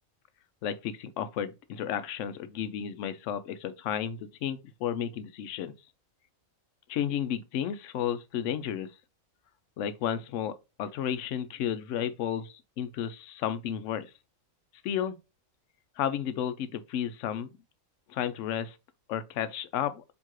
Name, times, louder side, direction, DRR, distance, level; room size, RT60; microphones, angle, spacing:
voice 1, 0.6-5.7 6.9-8.9 9.8-14.1 14.8-15.2 16.0-17.5 18.1-18.7 19.1-20.0, left 9 dB, 75° left, 0.9 m, -32 dB
4.6 x 3.0 x 2.9 m
omnidirectional pair, 1.4 m